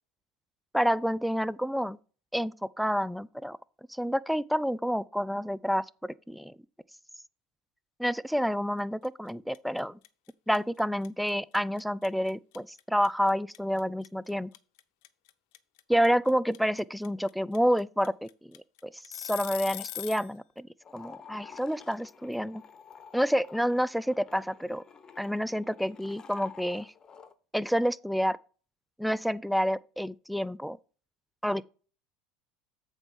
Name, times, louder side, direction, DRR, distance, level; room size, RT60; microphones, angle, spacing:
voice 1, 0.7-2.0 2.3-3.6 3.9-6.6 8.0-10.0 10.5-14.5 15.9-20.7 20.9-22.6 23.1-24.8 25.2-26.9 27.5-28.4 29.0-30.8 31.4-31.6, equal, ahead, 0.4 m, -29 dB
sound 1, 9.0-9.3 9.5-20.3, left 16 dB, 70° left, 0.6 m, -41 dB
sound 2, 20.8-27.3, left 7 dB, 30° left, 1.0 m, -50 dB
7.9 x 4.4 x 5.4 m
hypercardioid pair, 80°, 2 cm